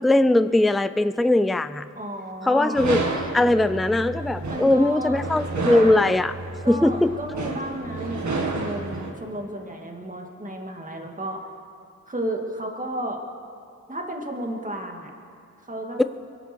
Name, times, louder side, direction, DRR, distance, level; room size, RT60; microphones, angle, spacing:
voice 1, 0.0-1.9 2.5-3.0 3.3-6.3 6.7-7.2 16.0-16.1, left 2 dB, ahead, 13 dB, 0.4 m, -20 dB
voice 2, 1.9-2.8 4.5-5.2 6.6-11.5 12.1-13.2 13.9-15.1 15.7-16.0, right 1 dB, 25° right, 2 dB, 2.4 m, -33 dB
sound 1, 2.7-9.1, right 3 dB, 65° right, 1.9 m, -30 dB
23.5 x 12.5 x 4.6 m, 2.4 s
cardioid pair, 60°, 31 cm